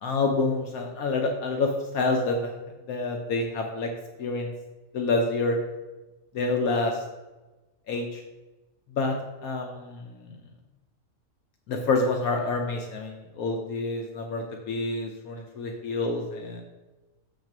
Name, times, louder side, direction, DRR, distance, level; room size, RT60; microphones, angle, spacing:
voice 1, 0.0-2.5 2.9-3.9 4.2-4.5 4.9-5.6 6.3-7.0 7.9-8.2 8.9-9.2 9.4-10.4 11.7-16.6, left 3 dB, 80° left, 2 dB, 1.2 m, -27 dB
7.3 x 4.0 x 6.0 m, 1.1 s
omnidirectional pair, 1.5 m